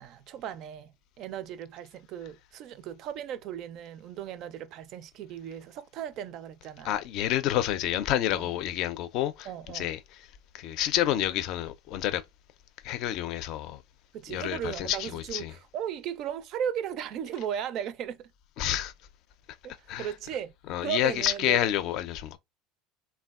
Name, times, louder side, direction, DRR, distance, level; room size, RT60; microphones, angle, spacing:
voice 1, 0.0-7.0 8.3-8.5 9.5-9.9 14.1-18.3 19.6-20.5 20.8-21.7, right 9 dB, 55° right, 0.4 m, -36 dB
voice 2, 6.8-9.5 9.7-10.0 10.5-12.2 12.8-13.8 14.3-15.5 18.6-18.9 19.9-20.1 20.7-22.4, left 12 dB, 60° left, 0.4 m, -28 dB
3.3 x 2.3 x 2.3 m
hypercardioid pair, 75°, 0 cm